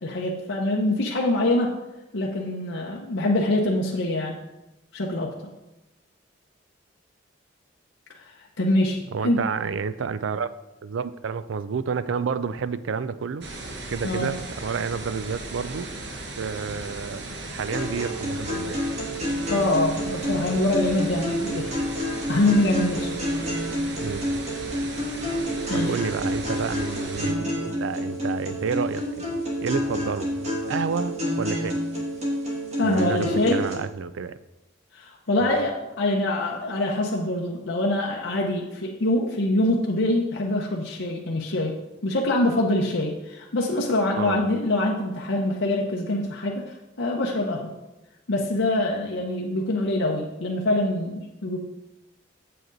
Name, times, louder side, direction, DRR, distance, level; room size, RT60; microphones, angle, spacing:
voice 1, 0.0-1.7 2.1-4.4 4.9-5.3 8.6-9.4 14.0-14.3 19.5-21.7 22.3-23.2 25.7-25.9 32.8-33.6 34.9-41.7 42.0-47.7 48.3-51.6, left 1 dB, 75° left, -2 dB, 0.9 m, -24 dB
voice 2, 9.1-10.5 10.8-13.5 13.9-15.9 16.4-17.2 17.5-18.8 24.0-24.3 25.7-31.8 32.8-34.4 44.2-44.4, right 5 dB, 85° right, 14 dB, 0.4 m, -30 dB
sound 1, 13.4-27.3, right 2 dB, 60° right, 1.1 m, -37 dB
sound 2, 17.7-33.7, equal, 35° right, 2.1 m, -29 dB
7.8 x 7.6 x 4.0 m, 1.0 s
head